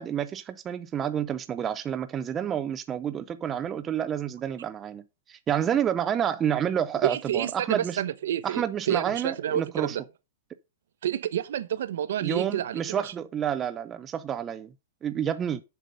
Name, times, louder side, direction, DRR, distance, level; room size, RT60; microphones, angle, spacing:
voice 1, 0.0-5.0 5.3-8.0 8.4-10.0 12.2-14.7 15.0-15.6, right 9 dB, 15° right, 0.4 m, -29 dB
voice 2, 7.0-10.0 11.0-13.1, right 11 dB, 65° right, 0.8 m, -29 dB
7.4 x 6.8 x 5.1 m
supercardioid pair, 175°, 0 cm